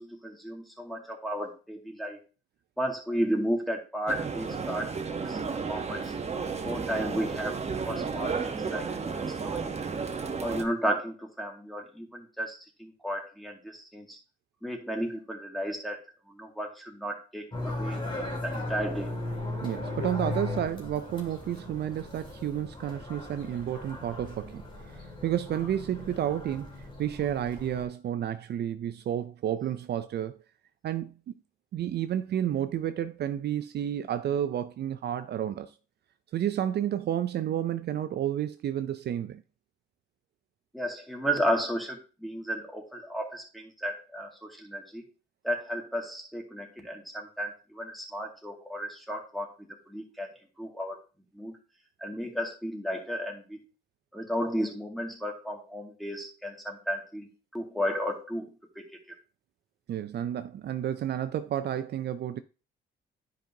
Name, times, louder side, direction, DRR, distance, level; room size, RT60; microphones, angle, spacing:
voice 1, 0.0-2.2 2.8-6.1 6.6-7.6 7.9-9.8 10.4-14.2 14.6-16.0 16.3-18.0 18.4-19.1 40.7-45.0 45.4-50.3 50.6-51.0 51.3-51.6 52.0-53.6 54.1-58.5 58.8-58.9, equal, ahead, 2.2 m, -33 dB
sound 1, 4.1-10.6, right 5 dB, 35° right, 1.1 m, -33 dB
sound 2, 17.5-27.9, left 2 dB, 25° left, 2.3 m, -37 dB
voice 2, 19.6-26.7 27.0-30.4 30.8-31.4 31.7-35.7 36.3-39.4 59.9-62.4, right 10 dB, 55° right, 0.5 m, -31 dB
10.0 x 5.3 x 2.8 m
cardioid pair, 90°, 20 cm